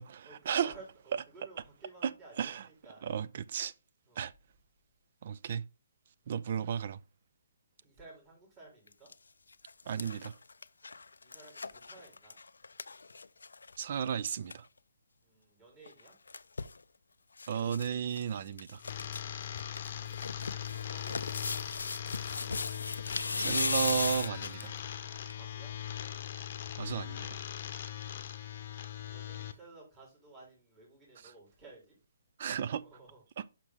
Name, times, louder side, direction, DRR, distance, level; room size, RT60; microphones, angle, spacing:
voice 1, 0.2-3.1 4.1-4.3 7.8-9.1 11.2-12.4 15.2-16.1 20.0-21.4 25.3-25.7 29.1-31.9 32.8-33.2, right 3 dB, 20° right, 3.9 m, -55 dB
voice 2, 3.0-3.7 4.2-4.3 5.2-5.6 6.3-7.0 9.9-10.3 13.8-14.6 17.5-18.8 23.4-24.7 26.8-27.4 32.4-32.8 33.4-33.5, right 8 dB, 50° right, 0.4 m, -33 dB
sound 1, 8.9-9.1 9.5-13.8 14.1-14.2 14.3-14.6 15.9-16.8 17.4-17.9 18.1-18.2 18.6-19.2 19.6-24.8 25.3-25.4, left 4 dB, 85° left, 0.4 m, -37 dB
sound 2, 18.8-29.5, left 10 dB, 45° left, 0.8 m, -40 dB
5.9 x 5.8 x 3.6 m
hypercardioid pair, 145°, 0 cm